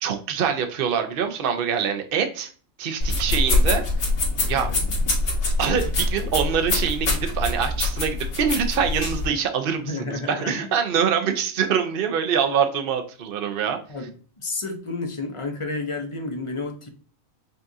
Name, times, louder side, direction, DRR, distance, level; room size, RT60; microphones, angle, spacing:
voice 1, 0.0-2.5 2.8-3.8 4.5-4.7 5.6-13.8, right 7 dB, 50° right, 6 dB, 0.8 m, -24 dB
sound 1, 3.0-9.3, left 2 dB, 80° left, 1.8 m, -24 dB
voice 2, 9.9-10.7 13.9-14.1 14.4-16.9, left 3 dB, 30° left, 4 dB, 0.6 m, -31 dB
5.4 x 2.5 x 2.6 m, 0.41 s
omnidirectional pair, 1.4 m